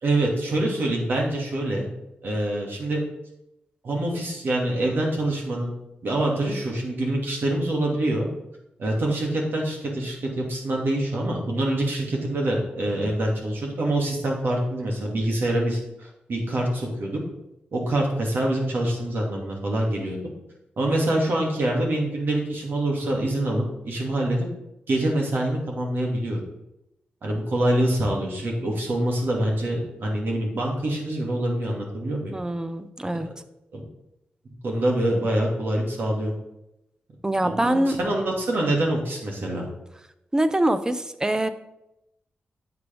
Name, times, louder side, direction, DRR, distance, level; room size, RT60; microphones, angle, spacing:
voice 1, 0.0-1.9 2.2-3.0 3.8-5.7 6.0-8.3 8.8-17.2 17.7-20.2 20.8-24.5 24.9-26.4 27.2-32.3 33.1-33.2 33.7-33.8 34.6-36.3 37.4-39.7, right 1 dB, 70° right, -1 dB, 2.5 m, -25 dB
voice 2, 32.3-33.3 37.2-38.0 40.3-41.5, right 1 dB, 20° right, 11 dB, 0.8 m, -24 dB
9.5 x 6.9 x 3.6 m, 0.87 s
cardioid pair, 50°, 4 cm